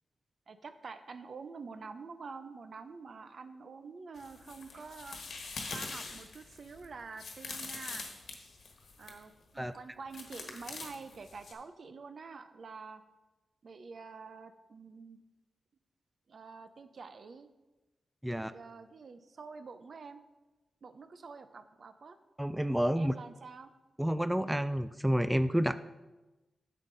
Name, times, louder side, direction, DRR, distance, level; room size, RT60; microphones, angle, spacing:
voice 1, 0.5-5.2 5.7-8.1 9.0-13.0 13.6-15.2 16.3-17.5 18.3-20.2 20.8-22.2 22.9-23.7, right 4 dB, 65° right, 9 dB, 0.6 m, -47 dB
sound 1, 4.2-9.2 10.1-11.5, left 4 dB, 80° left, 1.3 m, -44 dB
voice 2, 22.4-23.1 24.0-25.8, equal, 5° right, 12 dB, 0.3 m, -29 dB
9.1 x 6.5 x 3.9 m, 1.1 s
cardioid pair, 60°, 0 cm